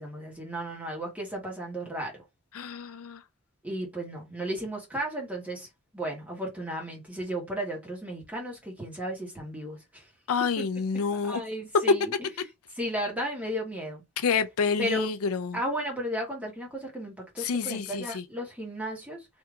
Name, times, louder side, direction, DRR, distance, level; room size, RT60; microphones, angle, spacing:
voice 1, 0.0-2.2 3.6-5.7 5.9-10.1 11.2-12.1 12.7-14.0 14.8-15.1 15.5-19.3, right 1 dB, 5° right, 1.2 m, -34 dB
voice 2, 2.5-3.2 10.3-11.4 14.2-15.6 17.4-18.2, left 6 dB, 70° left, 0.4 m, -29 dB
3.4 x 2.8 x 2.4 m
head